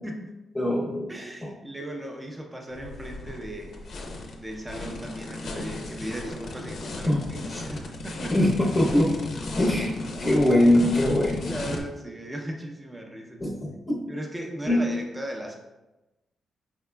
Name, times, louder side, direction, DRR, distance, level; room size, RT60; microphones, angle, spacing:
voice 1, 0.6-1.1 7.0-7.2 8.3-9.2 9.6-9.9 10.2-11.5 13.4-14.0 14.7-14.8, left 1 dB, 15° left, -5 dB, 0.8 m, -22 dB
voice 2, 1.1-4.1 4.4-8.4 11.3-13.5 14.1-15.6, right 1 dB, 15° right, 1 dB, 0.6 m, -37 dB
sound 1, 2.7-11.8, left 2 dB, 65° left, 0.6 m, -36 dB
4.8 x 3.5 x 2.2 m, 1.0 s
cardioid pair, 80°, 0 cm